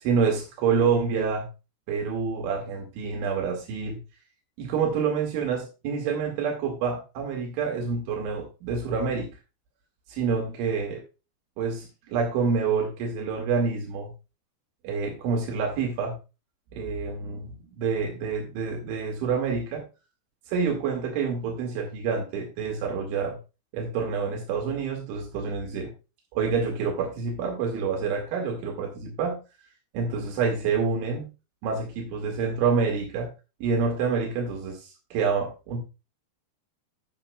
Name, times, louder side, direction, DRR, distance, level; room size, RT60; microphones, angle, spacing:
voice 1, 0.1-1.5 1.9-4.0 4.6-9.3 10.1-11.0 11.6-14.1 14.8-16.2 16.7-17.5 17.8-19.8 20.5-23.4 23.7-25.9 26.3-29.4 29.9-31.3 31.6-33.3 33.6-34.8 35.1-35.8, right 5 dB, 85° right, 1 dB, 4.2 m, -27 dB
17.0 x 6.4 x 2.3 m, 0.30 s
omnidirectional pair, 5.2 m